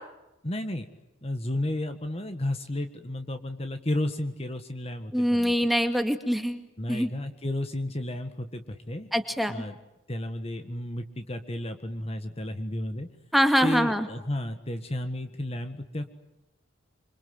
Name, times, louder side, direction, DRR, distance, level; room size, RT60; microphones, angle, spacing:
voice 1, 0.4-0.8 1.2-5.7 6.8-9.1 9.5-9.8 10.1-13.1 13.6-16.1, left 1 dB, 30° left, 8 dB, 1.6 m, -32 dB
voice 2, 5.1-6.6 6.9-7.1 9.1-9.6 13.3-14.1, equal, ahead, 6 dB, 2.2 m, -24 dB
27.0 x 26.0 x 7.9 m, 0.95 s
head